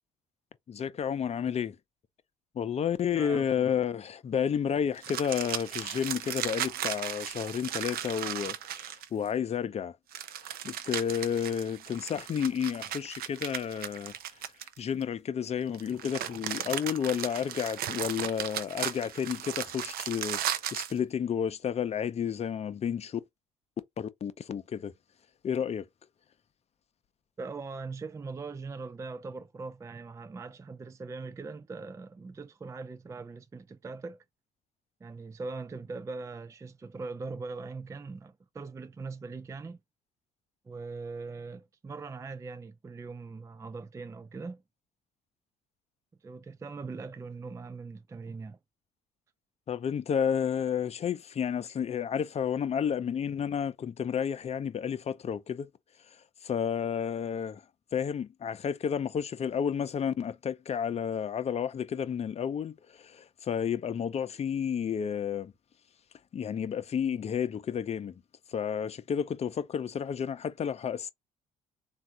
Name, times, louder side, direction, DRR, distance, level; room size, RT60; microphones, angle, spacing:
voice 1, 0.7-1.8 2.5-10.0 10.6-14.1 14.8-20.4 20.7-23.2 24.0-24.9 25.4-25.8 49.7-55.7 56.4-57.6 57.9-65.5 66.3-68.1 68.5-71.1, left 8 dB, 35° left, 0.6 m, -31 dB
voice 2, 3.1-3.8 27.4-34.2 35.0-39.8 40.7-44.6 46.2-48.6, right 4 dB, 15° right, 0.4 m, -41 dB
sound 1, 5.0-9.3 10.1-15.0 15.7-21.0, right 10 dB, 55° right, 0.6 m, -36 dB
3.4 x 2.4 x 4.4 m
hypercardioid pair, 60°, 18 cm